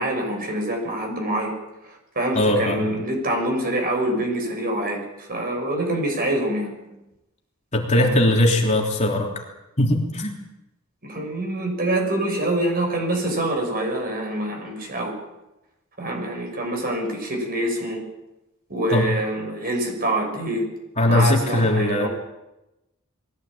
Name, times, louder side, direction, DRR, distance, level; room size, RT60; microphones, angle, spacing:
voice 1, 0.0-1.5 2.1-6.7 7.9-8.2 11.0-15.2 16.0-18.0 18.7-20.7 21.1-22.1, right 1 dB, 45° right, 3 dB, 6.5 m, -25 dB
voice 2, 2.3-2.9 7.7-9.5 9.8-10.3 18.9-19.1 21.0-22.1, left 1 dB, 30° left, 0 dB, 3.4 m, -20 dB
21.5 x 17.0 x 8.7 m, 0.96 s
head